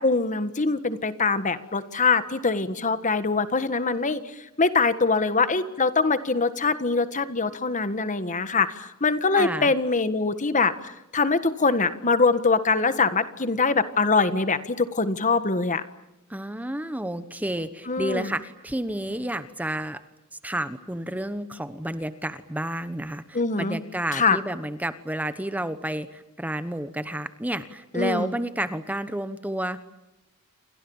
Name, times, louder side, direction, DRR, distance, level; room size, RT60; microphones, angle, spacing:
voice 1, 0.0-4.2 4.6-15.8 17.9-18.3 23.3-23.8 24.1-24.4 27.9-28.3, left 4 dB, 35° left, 12 dB, 1.6 m, -23 dB
voice 2, 9.3-9.7 16.3-20.0 20.3-29.8, right 1 dB, 5° right, 12 dB, 1.0 m, -31 dB
29.0 x 25.0 x 7.2 m, 0.95 s
head